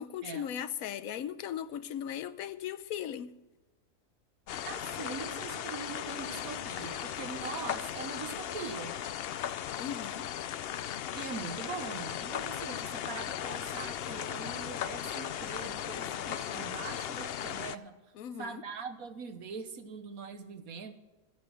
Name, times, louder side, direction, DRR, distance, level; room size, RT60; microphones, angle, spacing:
voice 1, 0.0-3.3 9.8-10.3 18.1-18.6, left 9 dB, 85° left, 1.1 m, -38 dB
sound 1, 4.5-17.8, left 10 dB, 65° left, 0.6 m, -37 dB
voice 2, 4.6-9.0 11.1-18.0 18.4-20.9, right 5 dB, 90° right, 1.6 m, -42 dB
14.5 x 10.0 x 6.3 m
omnidirectional pair, 1.4 m